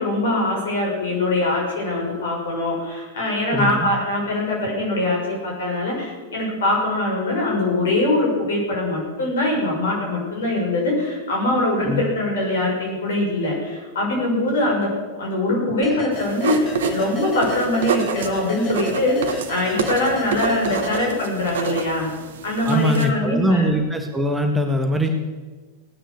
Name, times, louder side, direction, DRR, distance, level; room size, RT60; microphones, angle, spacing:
voice 1, 0.0-22.1 22.4-23.7, left 1 dB, 65° left, -1 dB, 6.5 m, -23 dB
voice 2, 3.5-3.9 11.8-12.1 22.7-25.1, equal, 5° right, 4 dB, 1.6 m, -21 dB
sound 1, 15.8-21.6, left 1 dB, 25° left, 2.6 m, -33 dB
sound 2, 16.1-23.1, right 7 dB, 65° right, 1.3 m, -28 dB
17.0 x 9.8 x 6.6 m, 1.3 s
figure-of-eight pair, 95°, 0 cm